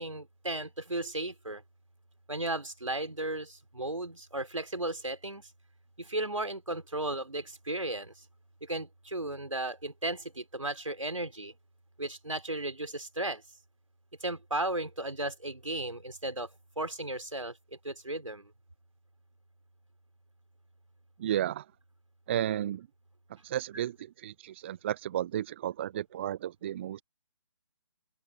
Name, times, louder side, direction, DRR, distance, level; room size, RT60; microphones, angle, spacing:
voice 1, 0.0-1.6 2.3-5.4 6.0-8.1 8.7-11.5 12.0-13.4 14.2-16.5 16.8-17.5 17.8-18.5, right 1 dB, 85° right, 4.4 m, -35 dB
voice 2, 21.2-21.6 22.3-22.9 23.4-27.0, right 11 dB, 20° right, 0.5 m, -33 dB
open air
figure-of-eight pair, 145°, 16 cm